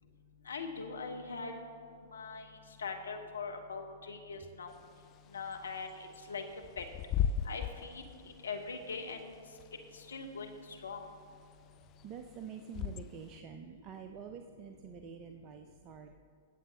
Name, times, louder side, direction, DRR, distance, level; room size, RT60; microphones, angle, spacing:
voice 1, 0.5-1.5 2.1-2.5 2.8-4.7 5.3-5.9 6.3-6.4 6.8-6.9 7.4-8.0 8.4-9.2 10.1-10.5 10.8-11.0, left 4 dB, 75° left, 4 dB, 1.2 m, -41 dB
Bird / Wind, 4.7-13.4, left 9 dB, 35° left, 0.4 m, -39 dB
voice 2, 11.6-16.2, right 7 dB, 35° right, 6 dB, 0.6 m, -47 dB
21.5 x 7.9 x 2.9 m, 2.5 s
figure-of-eight pair, 105°, 0 cm